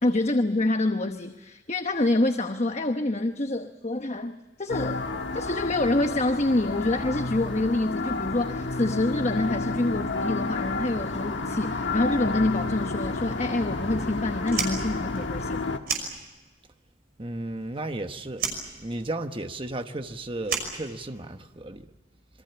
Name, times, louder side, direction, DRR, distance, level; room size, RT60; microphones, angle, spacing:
voice 1, 0.0-5.0 5.3-15.6, left 2 dB, 35° left, 1.0 m, -26 dB
sound 1, 4.7-15.8, left 3 dB, 65° left, 1.6 m, -31 dB
Fire, 14.4-16.7 17.0-18.0 18.3-21.5, right 6 dB, 50° right, 5.7 m, -33 dB
voice 2, 17.2-18.4 18.8-21.8, right 2 dB, 25° right, 1.1 m, -34 dB
27.0 x 23.5 x 7.0 m
head